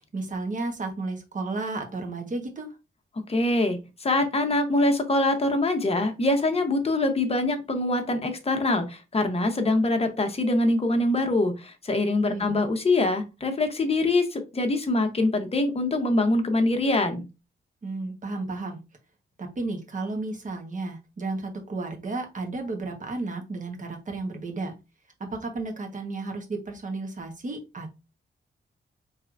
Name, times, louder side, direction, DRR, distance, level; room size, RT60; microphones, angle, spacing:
voice 1, 0.1-2.7 12.3-12.6 17.8-18.8 19.4-24.7 25.3-28.0, right 3 dB, 40° right, 3 dB, 1.3 m, -33 dB
voice 2, 3.3-17.3, left 2 dB, 30° left, 5 dB, 1.0 m, -24 dB
4.7 x 3.3 x 2.5 m, 0.27 s
wide cardioid pair, 110°, 20 cm